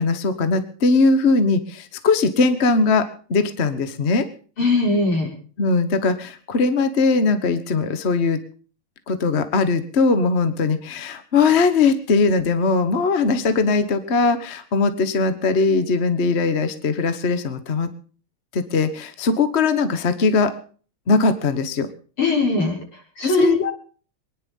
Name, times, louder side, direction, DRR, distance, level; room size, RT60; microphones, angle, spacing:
voice 1, 0.0-3.0 3.3-4.2 5.6-8.4 9.1-17.9 18.5-20.5 21.1-21.9 23.2-23.7, left 4 dB, 35° left, 10 dB, 1.3 m, -20 dB
voice 2, 4.6-5.3 22.2-22.8 23.2-23.5, left 2 dB, 80° left, -1 dB, 6.4 m, -19 dB
23.0 x 10.5 x 5.4 m, 0.42 s
omnidirectional pair, 2.3 m